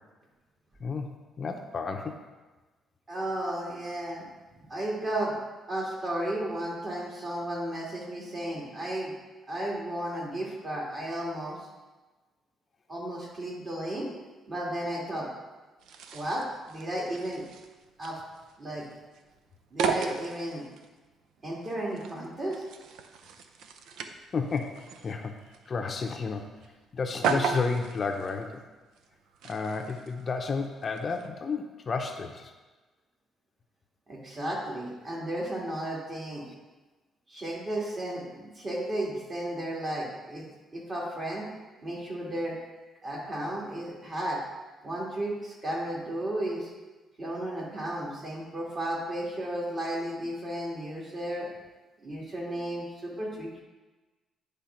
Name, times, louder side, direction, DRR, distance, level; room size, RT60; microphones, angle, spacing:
voice 1, 0.8-2.1 24.3-25.3 25.7-26.5 26.9-28.6 29.4-32.5, left 4 dB, 40° left, 4 dB, 0.6 m, -32 dB
voice 2, 3.1-4.3 4.7-5.3 5.7-9.1 9.5-11.6 12.9-14.1 14.5-15.3 16.1-17.4 18.0-18.2 18.6-18.8 19.7-20.6 21.4-22.6 34.1-36.4 37.3-40.4 40.7-41.4 41.8-42.6 43.0-44.4 44.8-46.7 47.2-51.5 52.0-53.6, right 1 dB, 35° right, -4 dB, 2.3 m, -33 dB
sound 1, 15.8-31.3, right 6 dB, 80° right, 0.6 m, -37 dB
9.9 x 3.4 x 5.7 m, 1.2 s
cardioid pair, 105°, 0 cm